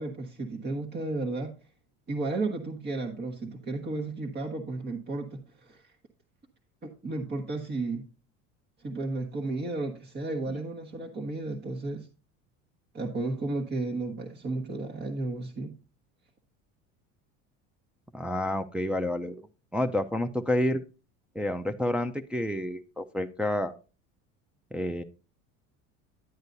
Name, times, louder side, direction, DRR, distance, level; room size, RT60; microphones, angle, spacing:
voice 1, 0.0-1.5 2.1-5.9 6.8-8.0 8.8-12.1 12.9-15.7, right 2 dB, 30° right, 2 dB, 1.3 m, -33 dB
voice 2, 18.1-19.4 19.7-20.8 21.3-23.7 24.7-25.0, left 1 dB, 5° right, 3 dB, 0.5 m, -29 dB
10.5 x 8.0 x 2.6 m, 0.33 s
supercardioid pair, 100°, 35 cm